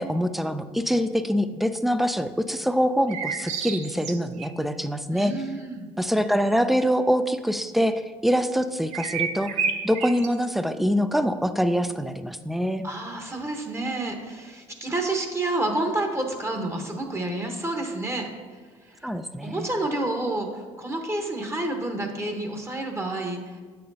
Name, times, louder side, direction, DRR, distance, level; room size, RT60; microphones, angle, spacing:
voice 1, 0.0-5.3 6.0-9.5 9.8-12.8 19.0-19.7, equal, ahead, 11 dB, 0.4 m, -24 dB
sound 1, 3.1-4.5 8.9-10.5, right 6 dB, 70° right, 0.7 m, -29 dB
voice 2, 5.1-5.9 12.8-19.1 19.4-23.6, right 2 dB, 20° right, 3 dB, 1.0 m, -29 dB
7.4 x 6.8 x 2.7 m, 1.5 s
supercardioid pair, 85°, 13 cm